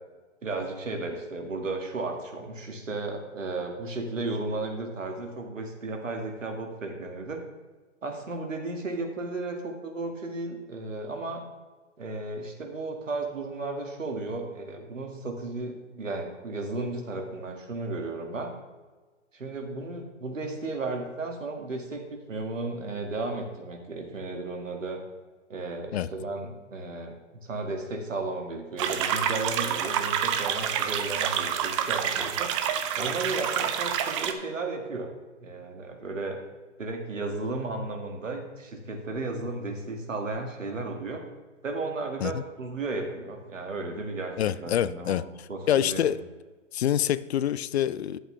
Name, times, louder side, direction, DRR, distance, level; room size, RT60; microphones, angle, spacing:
voice 1, 0.4-7.4 8.0-11.4 12.0-18.5 19.3-25.0 25.5-27.1 27.4-32.5 33.0-35.1 35.4-36.4 36.8-41.2 41.6-46.1, right 3 dB, 85° right, 3 dB, 2.1 m, -34 dB
sound 1, 28.8-34.3, right 9 dB, 25° right, 0.6 m, -28 dB
voice 2, 44.4-45.2 45.7-46.2 46.7-48.2, left 11 dB, 60° left, 17 dB, 0.5 m, -26 dB
11.0 x 7.8 x 3.3 m, 1.3 s
hypercardioid pair, 135°, 37 cm